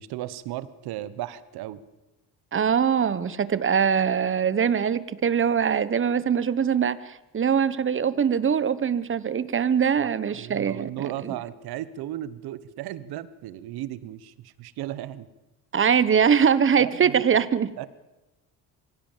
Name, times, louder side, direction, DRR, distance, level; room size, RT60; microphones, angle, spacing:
voice 1, 0.0-1.8 10.0-15.3 16.8-17.2 17.8-17.9, right 13 dB, 80° right, 16 dB, 1.3 m, -35 dB
voice 2, 2.5-11.4 15.7-17.7, right 7 dB, 35° right, 16 dB, 1.1 m, -22 dB
24.5 x 16.5 x 7.4 m, 1.1 s
cardioid pair, 100°, 37 cm